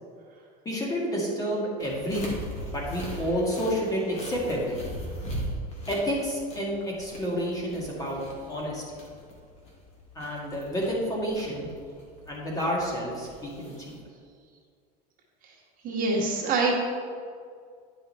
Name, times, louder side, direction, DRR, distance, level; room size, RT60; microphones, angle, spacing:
voice 1, 0.7-2.4 2.7-4.8 5.9-8.2 8.5-8.8 10.2-11.7 12.3-14.0, equal, 20° left, -3 dB, 2.1 m, -29 dB
sound 1, 1.8-14.0, equal, 35° left, 2.1 m, -40 dB
voice 2, 15.8-16.7, right 3 dB, 45° right, -2 dB, 1.6 m, -25 dB
10.0 x 5.5 x 4.3 m, 2.1 s
cardioid pair, 145°, 19 cm